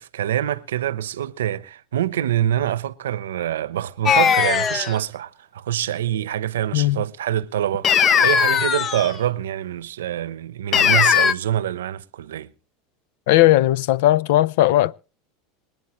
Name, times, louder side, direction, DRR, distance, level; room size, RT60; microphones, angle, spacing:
voice 1, 0.0-12.5, right 11 dB, 90° right, 0.9 m, -25 dB
sound 1, 4.1-5.0 7.8-9.1 10.7-11.3, left 8 dB, 35° left, 0.8 m, -18 dB
voice 2, 6.7-7.0 13.3-14.9, left 15 dB, 70° left, 0.7 m, -17 dB
26.5 x 9.4 x 3.1 m
hypercardioid pair, 105°, 0 cm